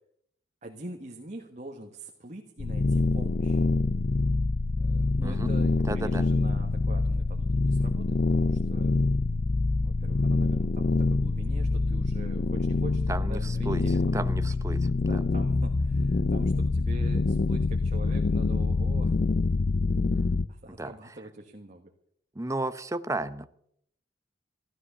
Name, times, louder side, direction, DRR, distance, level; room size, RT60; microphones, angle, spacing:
voice 1, 0.6-3.6 4.8-9.0 9.8-14.4 15.0-19.2 20.5-21.9, right 1 dB, 40° right, 3 dB, 1.5 m, -44 dB
sound 1, 2.6-20.5, left 3 dB, 50° left, 0.5 m, -25 dB
voice 2, 5.9-6.2 13.1-13.8 14.1-15.2 20.8-20.9 22.4-23.5, right 2 dB, 15° right, 11 dB, 0.8 m, -33 dB
15.0 x 12.5 x 6.9 m, 0.69 s
head